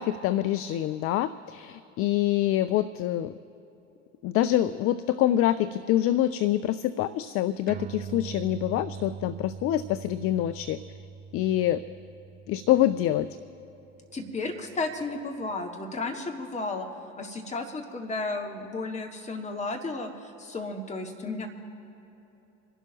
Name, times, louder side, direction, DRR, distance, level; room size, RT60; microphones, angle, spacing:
voice 1, 0.0-3.3 4.2-10.8 11.3-11.8 12.5-13.3, left 13 dB, 40° left, 13 dB, 0.5 m, -26 dB
sound 1, 7.7-14.5, right 7 dB, 25° right, 0.5 m, -42 dB
voice 2, 14.1-16.9 17.2-21.5, left 3 dB, 20° left, 2 dB, 2.2 m, -33 dB
27.5 x 12.0 x 3.0 m, 3.0 s
figure-of-eight pair, 75°, 36 cm